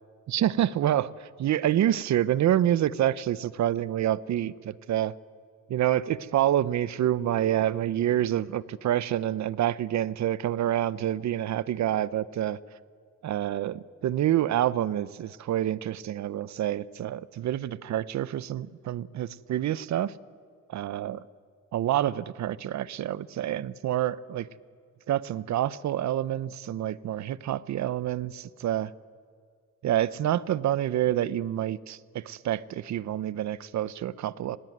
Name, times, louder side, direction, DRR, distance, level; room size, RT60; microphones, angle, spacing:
voice 1, 0.3-4.5 4.9-5.1 5.7-12.6 13.2-20.1 20.7-21.2 21.7-24.5 25.1-28.9 29.8-34.6, right 12 dB, 65° right, 18 dB, 0.9 m, -27 dB
24.5 x 20.5 x 9.5 m, 2.1 s
cardioid pair, 90°, 30 cm